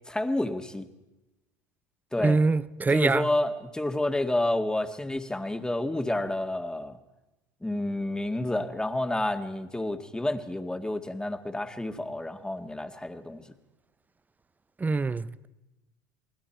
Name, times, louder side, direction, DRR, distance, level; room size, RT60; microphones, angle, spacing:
voice 1, 0.1-0.9 2.1-2.4 2.9-7.0 7.6-13.4, left 1 dB, 10° left, 2.0 m, -29 dB
voice 2, 2.2-3.3 14.8-15.5, right 3 dB, 20° right, 0.8 m, -24 dB
29.5 x 20.5 x 4.5 m
hypercardioid pair, 80°, 9 cm